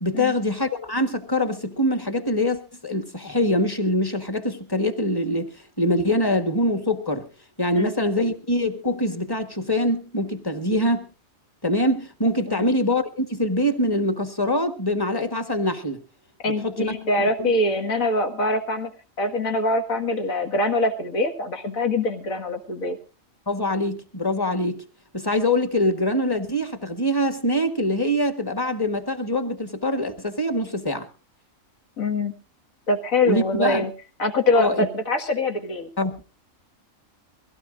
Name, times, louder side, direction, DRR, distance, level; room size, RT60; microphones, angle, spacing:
voice 1, 0.0-7.3 7.6-11.0 11.6-16.0 16.6-17.5 23.5-24.8 25.1-31.1 33.2-33.8 34.5-34.9 36.0-36.1, left 1 dB, 15° left, 1.4 m, -24 dB
voice 2, 16.4-18.9 19.2-23.0 32.0-32.3 32.9-33.9 34.2-35.9, left 2 dB, 90° left, 2.2 m, -24 dB
22.5 x 16.5 x 2.6 m
omnidirectional pair, 1.4 m